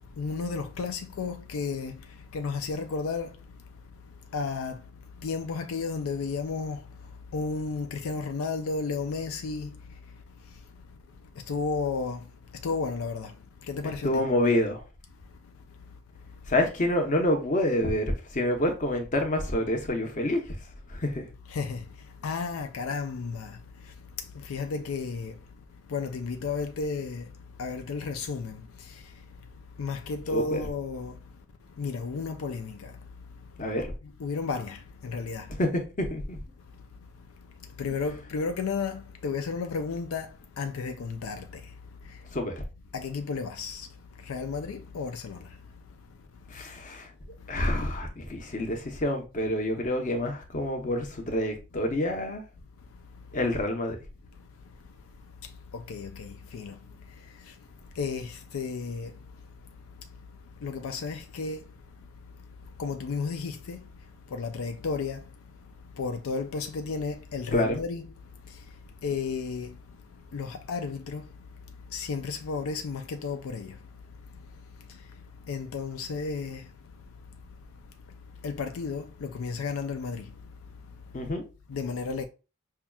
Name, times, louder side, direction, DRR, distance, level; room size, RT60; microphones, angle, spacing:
voice 1, 0.2-2.0 2.3-3.3 4.3-4.8 5.2-6.8 7.3-9.7 11.5-12.2 12.6-13.3 13.7-14.2 21.5-21.8 22.2-23.6 24.4-25.3 25.9-27.3 27.6-28.6 29.8-31.1 31.8-32.9 34.2-35.5 37.8-40.3 40.6-41.5 42.9-43.9 44.3-45.5 55.9-56.8 58.0-59.1 60.6-61.6 62.8-63.8 64.3-65.2 66.0-68.1 69.0-69.8 70.3-71.2 71.9-73.8 75.5-76.6 78.4-80.3 81.7-82.2, left 4 dB, 85° left, 0.4 m, -32 dB
voice 2, 14.0-14.8 16.5-20.5 20.9-21.2 30.3-30.6 33.6-33.9 35.6-36.4 42.3-42.6 46.5-47.1 47.5-52.4 53.3-54.0 67.5-67.8 81.1-81.4, left 1 dB, 40° left, 0.8 m, -27 dB
5.6 x 2.3 x 2.3 m
head